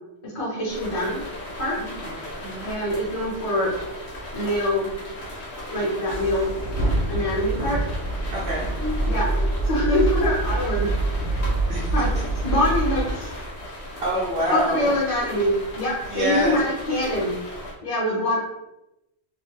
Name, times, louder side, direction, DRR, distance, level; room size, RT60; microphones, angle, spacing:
voice 1, 0.2-1.2 1.6-1.8 2.6-3.7 4.3-4.9 5.7-6.5 7.1-7.8 9.1-9.3 9.6-10.9 11.9-12.1 12.4-13.4 14.5-17.3 17.8-18.4, left 1 dB, 35° left, -6 dB, 0.7 m, -24 dB
sound 1, 0.7-17.7, left 1 dB, 80° left, 1.1 m, -37 dB
voice 2, 1.8-2.1 2.4-2.7 8.3-8.7 11.7-11.9 14.0-14.9 16.1-16.6, right 1 dB, 70° right, -5 dB, 0.8 m, -26 dB
sound 2, 6.1-13.1, right 2 dB, 55° left, 1.1 m, -25 dB
3.0 x 2.1 x 3.1 m, 0.90 s
omnidirectional pair, 1.1 m